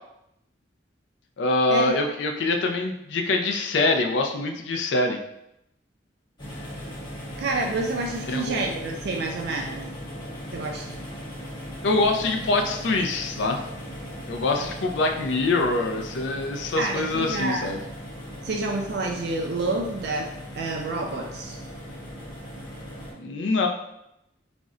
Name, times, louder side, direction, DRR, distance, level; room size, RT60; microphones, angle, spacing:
voice 1, 1.4-5.2 8.3-8.6 11.8-13.6 14.3-17.8 23.2-23.7, left 2 dB, 65° left, 3 dB, 0.4 m, -24 dB
sound 1, 6.4-23.1, equal, 25° left, 0.8 m, -38 dB
voice 2, 7.4-9.9 10.5-11.0 16.8-17.7 18.4-20.3 20.5-21.6, right 2 dB, 60° right, 1 dB, 0.3 m, -28 dB
2.5 x 2.1 x 3.6 m, 0.84 s
head